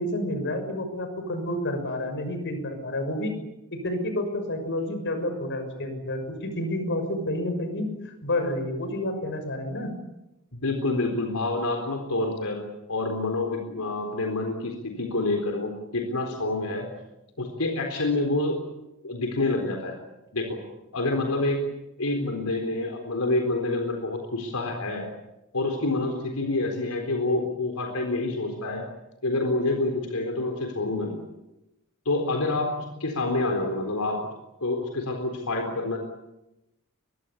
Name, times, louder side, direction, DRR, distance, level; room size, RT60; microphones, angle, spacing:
voice 1, 0.0-3.3 3.7-9.9, left 1 dB, 55° left, 7 dB, 6.3 m, -29 dB
voice 2, 10.5-16.9 17.4-18.6 19.0-20.0 20.3-20.6 20.9-21.6 22.0-25.0 25.5-28.8 29.2-31.2 32.1-34.2 34.6-36.0, left 2 dB, 80° left, 3 dB, 4.0 m, -27 dB
23.5 x 22.0 x 8.5 m, 0.93 s
head